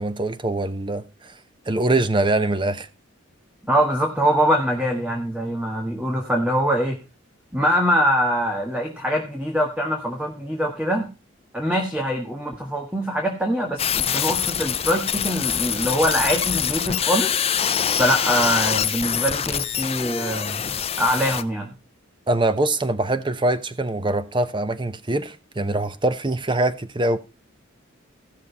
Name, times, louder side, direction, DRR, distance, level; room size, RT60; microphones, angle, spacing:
voice 1, 0.0-1.3 1.7-2.9 22.3-27.2, right 2 dB, 25° right, 0.8 m, -23 dB
voice 2, 3.7-7.0 7.5-11.1 11.5-17.7 18.0-21.7, equal, 5° right, 1.6 m, -23 dB
sound 1, 13.8-21.4, left 8 dB, 30° left, 0.5 m, -24 dB
16.0 x 6.5 x 4.1 m
head